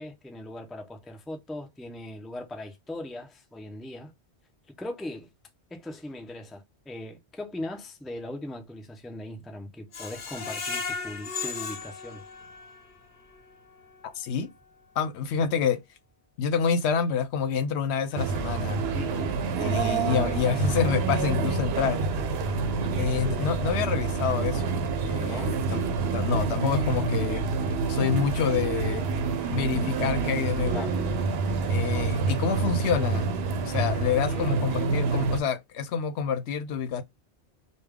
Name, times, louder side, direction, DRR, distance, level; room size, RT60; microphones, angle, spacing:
voice 1, 0.0-4.1 4.8-5.3 5.7-12.2 18.9-19.7 25.2-25.6 30.7-31.0 34.3-34.8, left 1 dB, ahead, 0.4 m, -39 dB
Screech, 9.9-12.9 13.3-13.4 13.8-13.9, left 5 dB, 50° left, 0.9 m, -35 dB
voice 2, 14.2-14.5 15.0-15.8 16.4-18.8 19.6-22.0 23.0-25.8 26.1-27.4 27.9-29.1 29.5-30.9 31.7-33.3 33.7-37.0, left 6 dB, 80° left, 0.8 m, -27 dB
sound 1, 18.2-35.4, right 4 dB, 70° right, 0.8 m, -27 dB
3.3 x 2.3 x 3.5 m
omnidirectional pair, 1.1 m